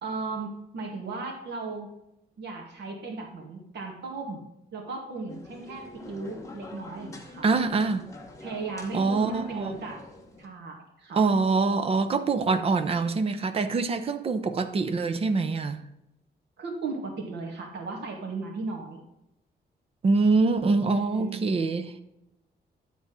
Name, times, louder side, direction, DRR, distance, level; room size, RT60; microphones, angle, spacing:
voice 1, 0.0-1.9 2.4-4.4 4.7-7.5 8.4-10.0 10.4-11.2 16.6-19.0 20.9-21.7, right 3 dB, 80° right, 2.0 m, -36 dB
sound 1, 5.3-10.5, left 2 dB, 15° left, 1.1 m, -45 dB
voice 2, 7.4-8.1 8.9-9.8 11.1-15.9 20.0-21.9, right 4 dB, 35° right, 0.7 m, -24 dB
10.5 x 4.1 x 6.3 m
wide cardioid pair, 175°, 18 cm